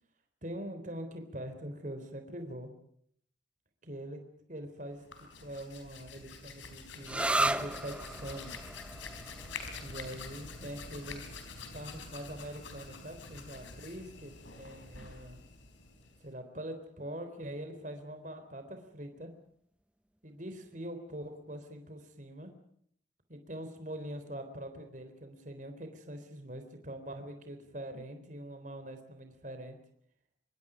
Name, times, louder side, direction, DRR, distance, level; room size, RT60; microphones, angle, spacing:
voice 1, 0.4-2.7 3.8-4.2 4.5-8.5 9.8-11.3 11.7-15.4 16.2-19.3 20.2-22.5 23.3-29.8, right 1 dB, 40° right, 7 dB, 3.7 m, -43 dB
Hands, 4.9-16.3, left 4 dB, 85° left, 4.5 m, -47 dB
sound 1, 7.1-14.4, right 1 dB, 5° right, 0.8 m, -37 dB
25.5 x 24.0 x 5.1 m, 0.65 s
head